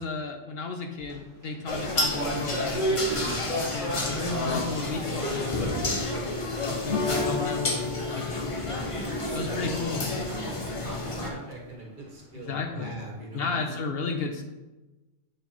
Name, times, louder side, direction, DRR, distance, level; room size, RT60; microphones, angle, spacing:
voice 1, 0.0-4.2 4.5-8.7 9.3-10.1 12.3-12.9 13.3-14.4, left 4 dB, 65° left, 5 dB, 0.9 m, -34 dB
sound 1, 1.0-1.2 1.4-4.8 5.2-6.1 6.4-6.5 7.2-7.3, right 1 dB, 15° left, 2.1 m, -31 dB
sound 2, 1.7-11.3, left 2 dB, 30° left, 0.8 m, -31 dB
sound 3, 6.9-11.7, left 4 dB, 80° left, 1.2 m, -35 dB
voice 2, 8.9-9.9 10.2-13.9, right 1 dB, 50° right, -1 dB, 1.4 m, -40 dB
8.2 x 3.3 x 4.3 m, 1.1 s
omnidirectional pair, 1.1 m